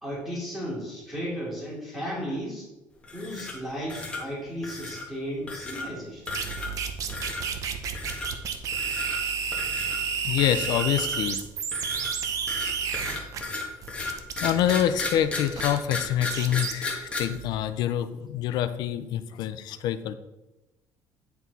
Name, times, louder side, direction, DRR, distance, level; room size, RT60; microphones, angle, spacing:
voice 1, 0.0-2.7 3.1-6.5, equal, 10° right, -10 dB, 2.7 m, -34 dB
sound 1, 3.0-3.6 3.9-4.2 4.6-5.1 5.5-5.9 6.3-6.8 7.1-7.4 7.9-8.3 8.7-9.2 9.5-10.0 10.4-11.3 11.7-17.2, left 3 dB, 15° left, 1.5 m, -34 dB
sound 2, 6.3-13.4 13.8-16.7 17.2-17.5, right 6 dB, 50° right, 0.8 m, -31 dB
voice 2, 10.2-11.4 14.4-20.1, left 11 dB, 70° left, 12 dB, 0.5 m, -26 dB
9.3 x 4.5 x 4.1 m, 1.0 s
cardioid pair, 150°, 8 cm